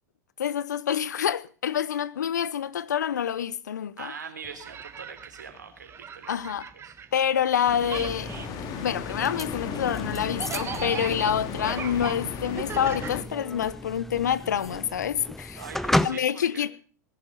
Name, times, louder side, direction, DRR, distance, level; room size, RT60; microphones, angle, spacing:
voice 1, 0.4-4.1 6.3-6.6 7.1-8.3 8.8-15.6 16.0-16.7, left 9 dB, 75° left, 0.9 m, -27 dB
voice 2, 4.0-6.4 6.8-6.9 15.6-16.7, right 6 dB, 80° right, 3.6 m, -42 dB
sound 1, 4.4-7.6 7.8-13.8, right 7 dB, 25° right, 1.4 m, -40 dB
sound 2, 7.5-13.2, left 6 dB, 40° left, 2.6 m, -36 dB
sound 3, 7.7-16.1, left 1 dB, 5° left, 0.8 m, -34 dB
19.5 x 11.0 x 5.4 m
figure-of-eight pair, 90°, 10 cm